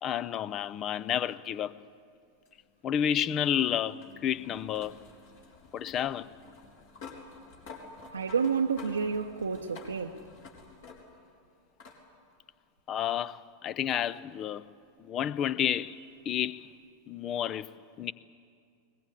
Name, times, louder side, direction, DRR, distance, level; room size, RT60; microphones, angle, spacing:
voice 1, 0.0-1.7 2.8-5.0 5.7-6.3 12.9-14.6 15.0-16.0 16.3-16.7 17.1-17.7 18.0-18.1, left 9 dB, 30° left, 0.6 m, -30 dB
sound 1, 2.4-11.3 11.8-12.0 13.3-13.4 16.3-16.4, left 4 dB, 55° left, 4.2 m, -50 dB
voice 2, 8.1-10.2, right 6 dB, 75° right, 0.8 m, -30 dB
21.5 x 20.5 x 8.4 m
figure-of-eight pair, 90°, 0 cm